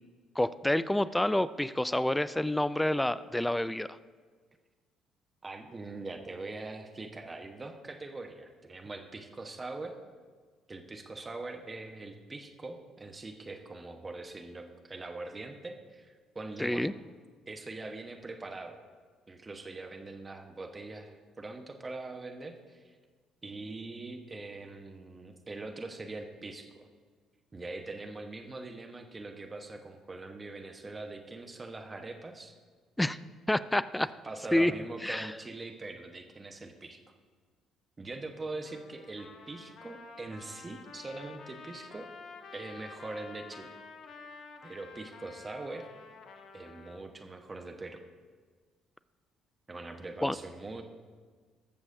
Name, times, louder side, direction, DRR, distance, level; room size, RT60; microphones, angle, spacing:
voice 1, 0.4-3.9 16.6-16.9 33.0-33.2 33.5-34.1 34.5-34.7 35.0-35.3 50.2-50.4, left 1 dB, 10° left, 16 dB, 0.4 m, -28 dB
voice 2, 5.4-9.9 10.7-16.9 17.5-18.8 19.3-23.0 23.4-26.9 27.5-32.5 34.2-37.0 38.0-42.1 42.5-43.7 44.6-45.9 46.5-48.0 49.7-50.8, right 2 dB, 25° right, 4 dB, 1.2 m, -42 dB
Trumpet, 38.6-47.0, left 5 dB, 55° left, 0.9 m, -50 dB
19.5 x 7.1 x 2.7 m, 1.5 s
hypercardioid pair, 50°, 0 cm